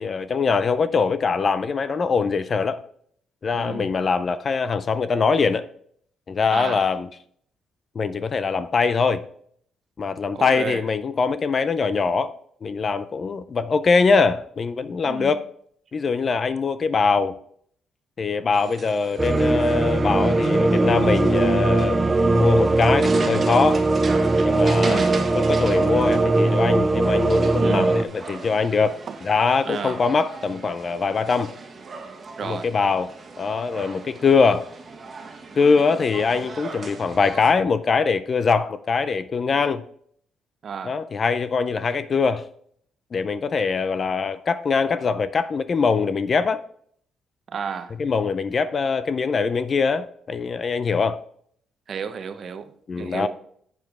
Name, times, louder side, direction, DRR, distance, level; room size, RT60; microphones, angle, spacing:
voice 1, 0.0-2.8 3.4-5.7 6.3-7.1 8.0-9.2 10.0-12.3 12.6-15.4 15.9-17.3 18.2-22.0 22.3-23.9 24.4-27.9 28.3-31.5 32.4-34.7 35.6-39.8 40.8-42.4 43.1-46.6 48.0-51.2 52.9-53.3, left 5 dB, 40° left, 0.4 m, -22 dB
voice 2, 3.5-4.0 6.5-6.9 10.3-10.8 15.0-15.4 24.8-25.2 27.6-28.0 29.1-29.2 29.6-30.0 32.4-32.7 40.6-41.0 47.5-47.9 51.9-52.7 53.0-53.3, right 6 dB, 55° right, 0.8 m, -31 dB
sound 1, 18.5-37.5, right 4 dB, 35° right, 1.3 m, -38 dB
sound 2, 19.2-28.1, right 2 dB, 20° right, 0.6 m, -20 dB
8.1 x 6.9 x 3.5 m
cardioid pair, 90°, 0 cm